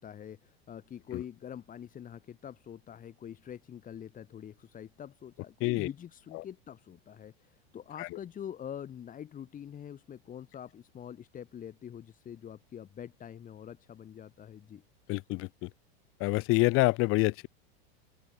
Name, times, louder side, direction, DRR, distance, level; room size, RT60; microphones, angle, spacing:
voice 1, 0.0-14.8, left 9 dB, 25° left, 3.6 m, -45 dB
voice 2, 15.1-15.7 16.2-17.5, left 22 dB, 40° left, 1.3 m, -27 dB
open air
supercardioid pair, 135°, 32 cm